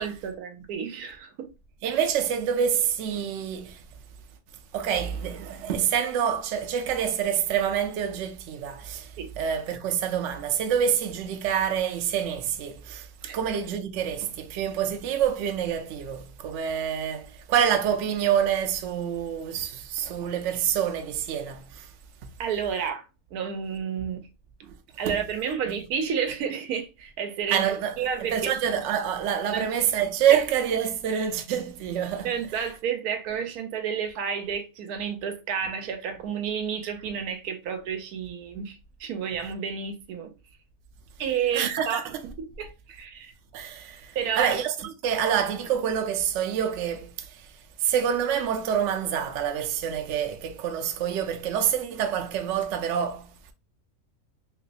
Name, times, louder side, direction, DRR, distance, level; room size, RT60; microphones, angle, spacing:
voice 1, 0.0-1.5 9.2-9.3 13.2-13.4 22.4-23.0 23.3-24.2 25.0-27.7 28.0-28.5 28.9-29.0 29.5-29.7 30.3-30.4 32.2-40.3 41.2-42.1 42.4-43.3 44.1-44.6, right 7 dB, 85° right, 1.1 m, -31 dB
voice 2, 1.8-3.8 4.7-21.9 24.7-24.8 25.1-25.2 27.5-32.3 41.5-42.0 43.5-47.5 47.8-53.5, right 8 dB, 65° right, 0.8 m, -27 dB
3.2 x 3.0 x 2.7 m
omnidirectional pair, 1.5 m